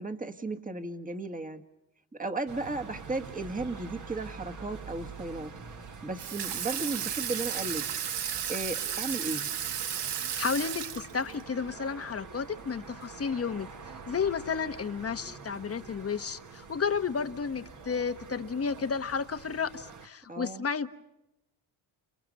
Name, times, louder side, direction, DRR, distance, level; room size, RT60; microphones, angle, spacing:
voice 1, 0.0-1.6 2.1-5.5 6.0-7.9 8.5-9.5 20.3-20.6, right 2 dB, 15° right, 4 dB, 1.8 m, -35 dB
sound 1, 2.5-20.1, right 5 dB, 40° right, 1.8 m, -46 dB
Water tap faucet / Sink (filling or washing), 6.2-11.4, right 9 dB, 55° right, 1.3 m, -33 dB
voice 2, 10.3-13.7 14.1-20.9, left 6 dB, 30° left, 9 dB, 1.2 m, -32 dB
30.0 x 28.5 x 5.4 m, 0.88 s
cardioid pair, 110°, 48 cm